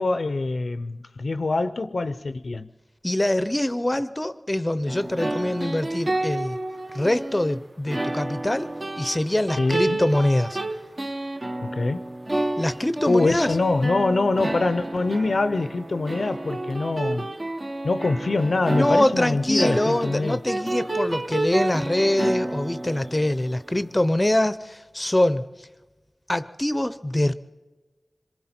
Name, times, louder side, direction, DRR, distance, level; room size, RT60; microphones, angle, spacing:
voice 1, 0.0-2.7 9.6-10.0 11.6-12.1 13.1-17.2 17.8-20.4, left 3 dB, 70° left, 0.5 m, -24 dB
voice 2, 3.0-6.6 6.9-10.6 12.6-13.6 18.7-25.7 26.3-27.3, left 1 dB, 20° left, 0.6 m, -24 dB
sound 1, 4.9-23.8, right 2 dB, 45° right, 1.0 m, -30 dB
26.0 x 23.0 x 4.4 m
wide cardioid pair, 70°, 0 cm